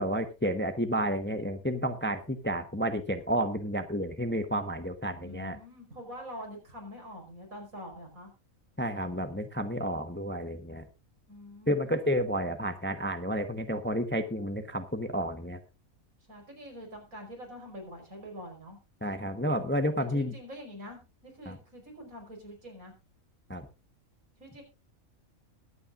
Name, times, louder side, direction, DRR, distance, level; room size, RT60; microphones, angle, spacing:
voice 1, 0.0-5.6 8.8-10.8 11.7-15.6 19.0-20.3 21.5-21.6 23.5-23.7, equal, 10° left, 8 dB, 0.8 m, -31 dB
voice 2, 5.2-8.3 11.3-12.0 16.3-18.8 20.1-22.9 24.4-24.6, equal, 80° right, 1 dB, 5.5 m, -45 dB
22.0 x 8.7 x 2.5 m, 0.29 s
omnidirectional pair, 1.4 m